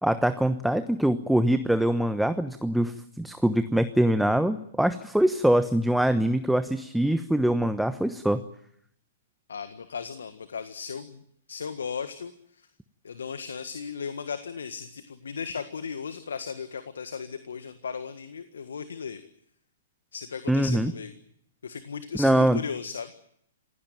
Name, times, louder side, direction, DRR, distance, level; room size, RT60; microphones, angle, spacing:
voice 1, 0.0-8.4 20.5-20.9 22.2-22.6, right 1 dB, ahead, 10 dB, 1.0 m, -23 dB
voice 2, 9.5-11.2 11.5-12.7 13.0-19.2 20.1-21.1 21.6-23.1, left 6 dB, 75° left, 10 dB, 1.6 m, -36 dB
27.0 x 16.5 x 9.2 m, 0.72 s
figure-of-eight pair, 115°, 0 cm